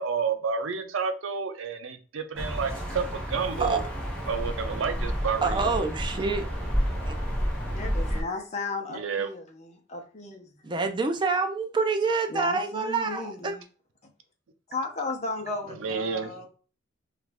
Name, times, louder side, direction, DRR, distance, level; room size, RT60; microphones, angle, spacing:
voice 1, 0.0-3.8 4.3-5.8 8.9-9.3 15.8-16.4, right 5 dB, 85° right, 0.5 m, -30 dB
sound 1, 2.4-8.2, equal, 5° left, 0.8 m, -30 dB
voice 2, 5.4-6.5 7.1-7.2 10.6-13.5, right 4 dB, 25° right, 0.3 m, -27 dB
voice 3, 7.7-10.8 12.3-13.6 14.7-16.5, left 3 dB, 35° left, 0.7 m, -35 dB
3.1 x 2.4 x 3.3 m
head